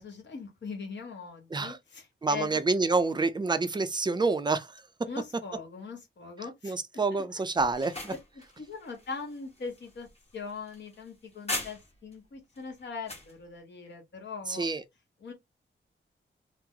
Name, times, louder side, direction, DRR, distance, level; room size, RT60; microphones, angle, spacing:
voice 1, 0.0-2.6 5.1-6.7 7.1-7.2 8.6-10.1 10.3-14.6 15.2-15.3, left 5 dB, 65° left, 1.2 m, -41 dB
voice 2, 2.2-4.8 6.6-8.1 14.5-14.8, right 3 dB, 20° right, 0.4 m, -28 dB
sound 1, 7.6-12.1 12.5-13.3, left 2 dB, 30° left, 1.2 m, -40 dB
2.9 x 2.0 x 3.7 m
wide cardioid pair, 95°, 20 cm